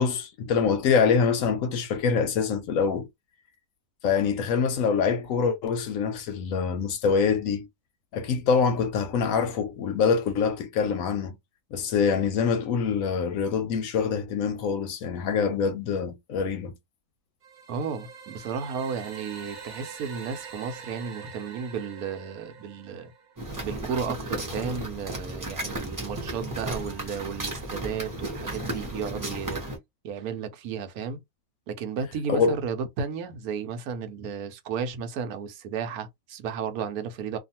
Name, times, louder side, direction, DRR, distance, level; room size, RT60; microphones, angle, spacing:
voice 1, 0.0-3.1 4.0-7.7 8.1-11.4 11.7-16.7 32.3-32.6, left 6 dB, 70° left, 0.9 m, -25 dB
sound 1, 17.4-23.4, right 6 dB, 55° right, 0.4 m, -44 dB
voice 2, 17.7-23.1 23.6-29.6 30.0-31.2 31.7-37.4, right 6 dB, 75° right, 1.1 m, -33 dB
sound 2, 23.4-29.8, right 1 dB, 15° right, 0.7 m, -34 dB
2.5 x 2.4 x 2.7 m
omnidirectional pair, 1.6 m